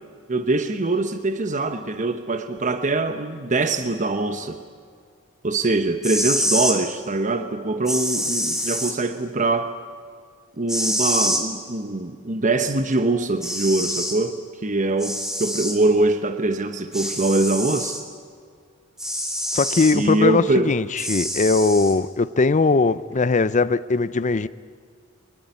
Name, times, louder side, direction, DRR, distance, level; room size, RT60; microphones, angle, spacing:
voice 1, 0.3-4.6 5.4-9.7 10.6-18.0 19.9-20.7, right 2 dB, 35° right, 8 dB, 1.0 m, -23 dB
sound 1, 6.0-6.8 7.9-8.9 10.7-11.4 12.9-13.0 13.4-14.2 15.0-15.8 16.9-18.0 19.0-20.0 21.0-21.9, equal, ahead, 2.9 m, -26 dB
voice 2, 19.5-24.5, left 3 dB, 35° left, 15 dB, 0.5 m, -20 dB
23.0 x 20.0 x 9.4 m, 2.1 s
head